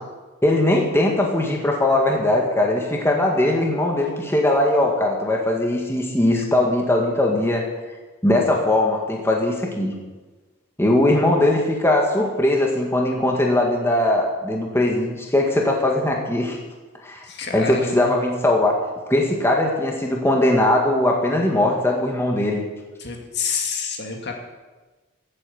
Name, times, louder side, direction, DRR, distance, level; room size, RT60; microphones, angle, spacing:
voice 1, 0.4-7.6 8.2-9.9 10.8-16.6 17.0-17.3 17.5-18.8 19.1-22.6, left 1 dB, 10° left, 0 dB, 1.8 m, -20 dB
voice 2, 17.2-18.1 23.0-24.3, left 5 dB, 55° left, 2 dB, 2.2 m, -28 dB
16.0 x 8.6 x 7.1 m, 1.3 s
head